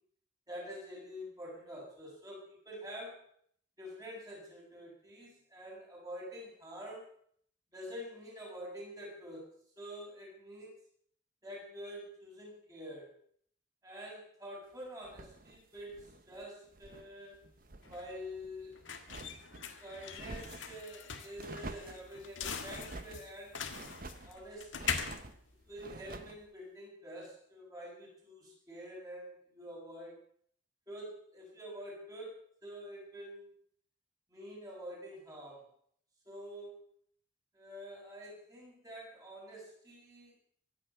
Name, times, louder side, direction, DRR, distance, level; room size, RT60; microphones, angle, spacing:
voice 1, 0.5-3.3 3.8-7.1 7.7-10.7 11.4-13.1 13.8-17.3 17.9-18.8 19.8-23.6 24.2-30.2 30.9-33.5 34.3-35.7 36.3-36.8 37.5-40.4, equal, 20° right, -3 dB, 6.9 m, -47 dB
sound 1, 15.0-17.1 17.4-18.0 18.4-19.7 20.1-20.8 21.4-22.1 22.6-23.2 23.7-24.3 24.7-25.4 25.8-26.4, right 2 dB, 45° right, 0.9 m, -48 dB
sound 2, 17.3-26.4, left 6 dB, 90° left, 1.7 m, -42 dB
23.5 x 10.0 x 5.7 m, 0.62 s
head